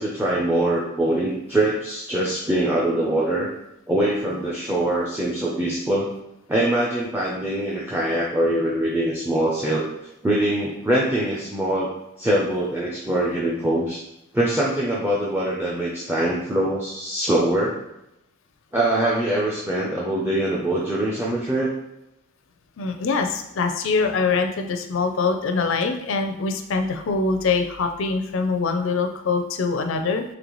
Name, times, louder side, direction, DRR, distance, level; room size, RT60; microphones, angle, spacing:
voice 1, 0.0-3.5 3.9-6.1 6.5-9.9 10.2-11.9 12.2-14.0 14.3-17.8 18.7-21.7, right 1 dB, 10° right, -6 dB, 0.4 m, -23 dB
voice 2, 22.8-30.2, left 4 dB, 60° left, 6 dB, 0.4 m, -23 dB
3.9 x 3.3 x 3.0 m, 0.89 s
head